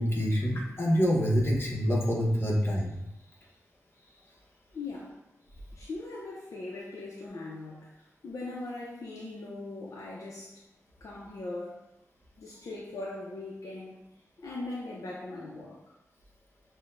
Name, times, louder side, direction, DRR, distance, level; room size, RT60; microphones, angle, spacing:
voice 1, 0.0-2.9, equal, 40° left, -3 dB, 0.9 m, -26 dB
voice 2, 4.7-5.2 5.7-7.9 8.2-10.6 11.0-11.9 12.4-14.0 14.4-15.8, left 2 dB, 70° left, -4 dB, 0.6 m, -40 dB
6.3 x 2.1 x 2.5 m, 0.88 s
wide cardioid pair, 135°, 6 cm